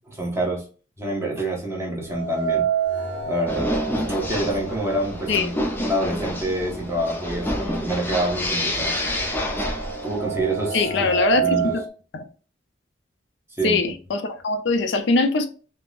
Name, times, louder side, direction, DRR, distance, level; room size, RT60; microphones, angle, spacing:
voice 1, 0.1-0.7 1.0-2.7 3.2-3.8 4.0-5.5 5.8-8.9 10.0-11.1 11.4-11.7 13.5-13.8, right 1 dB, 15° right, 0.9 m, -27 dB
sound 1, 2.1-6.1 6.5-6.6 7.5-7.6 8.0-11.9, right 7 dB, 80° right, 0.7 m, -28 dB
sound 2, 3.5-10.3, left 1 dB, 10° left, 0.5 m, -28 dB
voice 2, 10.7-11.8 12.1-12.2 13.6-15.5, left 3 dB, 70° left, 0.5 m, -22 dB
3.5 x 2.0 x 2.4 m
head